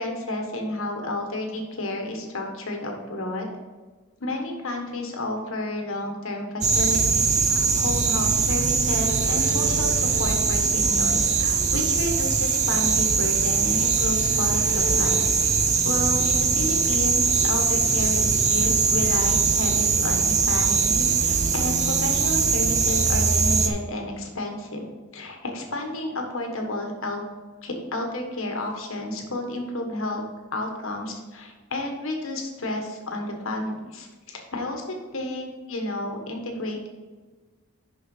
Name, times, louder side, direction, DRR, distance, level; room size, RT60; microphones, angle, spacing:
voice 1, 0.0-3.5 4.2-15.2 15.8-24.8 25.1-27.3 27.6-30.2 30.5-36.9, left 1 dB, 70° left, 2 dB, 1.4 m, -31 dB
sound 1, 6.6-23.7, right 5 dB, 30° right, 0.6 m, -22 dB
sound 2, 8.5-23.6, right 2 dB, 80° right, 2.6 m, -38 dB
6.6 x 5.8 x 5.5 m, 1.3 s
head